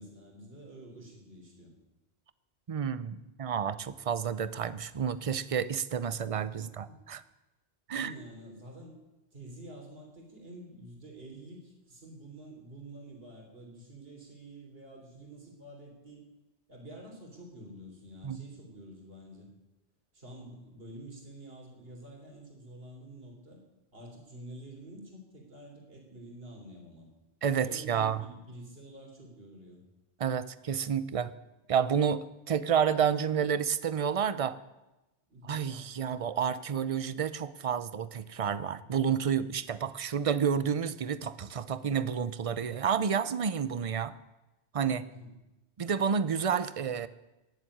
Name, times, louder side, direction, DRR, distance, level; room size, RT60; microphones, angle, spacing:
voice 1, 0.0-1.7 6.6-7.0 7.9-8.9 9.3-16.3 16.7-19.5 20.1-23.6 23.9-27.1 27.7-29.8 35.3-35.6 45.0-45.3, right 1 dB, 60° right, 1 dB, 3.8 m, -48 dB
voice 2, 2.7-7.2 7.9-8.1 18.2-18.4 27.4-28.2 30.2-31.3 31.7-34.6 35.4-44.1 44.7-45.1 45.8-47.1, right 7 dB, 40° right, 15 dB, 0.6 m, -30 dB
17.0 x 7.7 x 10.0 m, 1.0 s
omnidirectional pair, 1.1 m